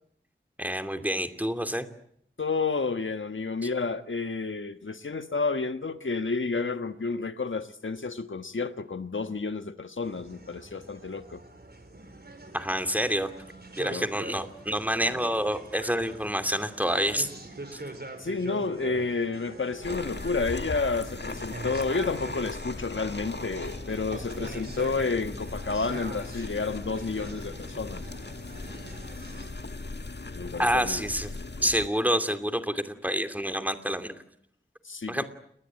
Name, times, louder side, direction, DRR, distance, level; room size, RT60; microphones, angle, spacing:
voice 1, 0.6-1.9 12.5-13.3 13.8-17.3 17.7-17.8 30.6-31.3 31.6-34.2 35.1-35.2, equal, 10° right, 2.7 m, -28 dB
voice 2, 2.4-11.4 13.9-14.1 18.2-28.0 30.3-31.0 31.6-31.7 34.8-35.2, left 4 dB, 80° left, 1.4 m, -30 dB
sound 1, 10.0-29.5, right 2 dB, 55° right, 4.9 m, -44 dB
sound 2, 19.8-31.9, left 3 dB, 60° left, 1.7 m, -38 dB
29.5 x 21.0 x 9.0 m
wide cardioid pair, 55°, 20 cm